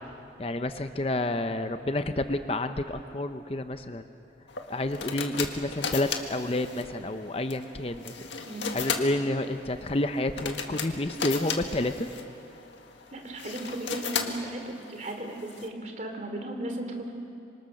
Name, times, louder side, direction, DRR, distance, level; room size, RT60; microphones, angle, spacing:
voice 1, 0.4-4.0 4.7-8.1 8.7-12.1, left 1 dB, 30° left, 9 dB, 0.7 m, -29 dB
sound 1, 4.5-15.7, left 6 dB, 85° left, 1.9 m, -36 dB
voice 2, 13.1-17.1, right 1 dB, 40° right, 4 dB, 3.0 m, -36 dB
26.0 x 25.5 x 6.6 m, 2.6 s
head